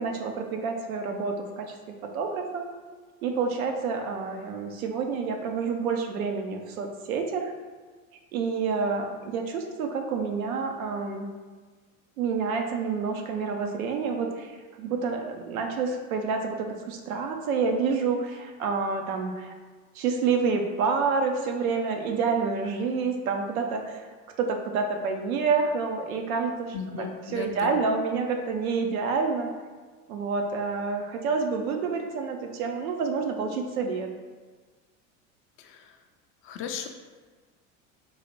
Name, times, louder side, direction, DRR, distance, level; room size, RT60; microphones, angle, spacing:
voice 1, 0.0-1.8 2.0-2.7 3.2-7.5 8.3-11.3 12.2-14.5 14.8-19.5 19.9-24.1 24.4-29.5 30.1-34.1, right 5 dB, 85° right, 4 dB, 0.6 m, -28 dB
voice 2, 26.7-27.8 35.6-35.9 36.4-36.9, left 7 dB, 35° left, 5 dB, 0.4 m, -36 dB
3.8 x 2.1 x 3.0 m, 1.4 s
hypercardioid pair, 85°, 41 cm